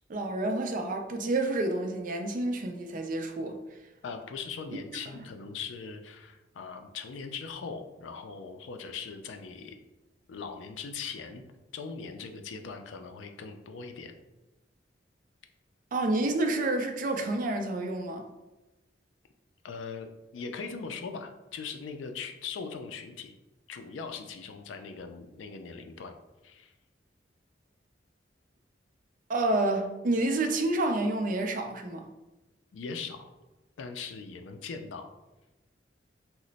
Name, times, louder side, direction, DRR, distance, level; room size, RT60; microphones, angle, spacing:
voice 1, 0.1-3.6 5.1-5.2 15.9-18.3 29.3-32.1, right 2 dB, 45° right, 0.4 m, -29 dB
voice 2, 4.0-9.8 10.3-11.4 11.7-14.1 19.6-20.1 20.3-23.3 23.7-26.2 26.4-26.7 32.7-33.3 33.8-35.1, left 5 dB, 80° left, 0.4 m, -40 dB
2.9 x 2.1 x 3.9 m
head